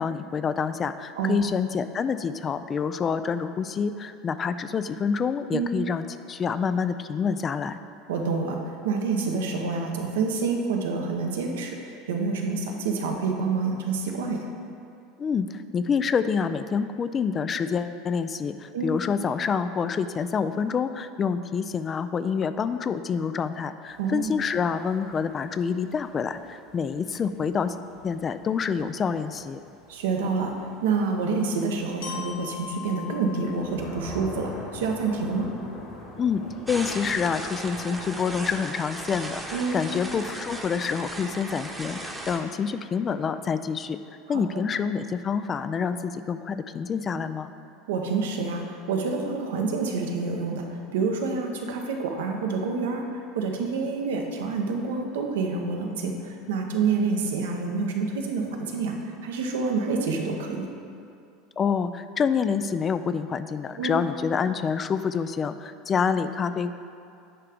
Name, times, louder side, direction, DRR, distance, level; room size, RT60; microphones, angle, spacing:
voice 1, 0.0-7.8 15.2-27.8 28.0-29.6 36.2-36.4 36.7-44.0 44.3-47.5 61.6-66.7, left 6 dB, 30° left, 11 dB, 0.3 m, -27 dB
voice 2, 8.1-14.5 18.7-18.9 24.0-24.3 29.9-30.5 30.8-35.5 39.5-39.8 44.3-44.6 47.9-60.7 63.8-64.0, right 4 dB, 75° right, 2 dB, 0.8 m, -28 dB
sound 1, 23.9-38.2, left 2 dB, 50° left, 1.7 m, -45 dB
Glockenspiel, 32.0-36.0, left 8 dB, 70° left, 1.3 m, -42 dB
sound 2, 36.7-42.4, right 1 dB, 10° right, 1.0 m, -36 dB
9.8 x 3.3 x 5.0 m, 2.5 s
hypercardioid pair, 80°, 0 cm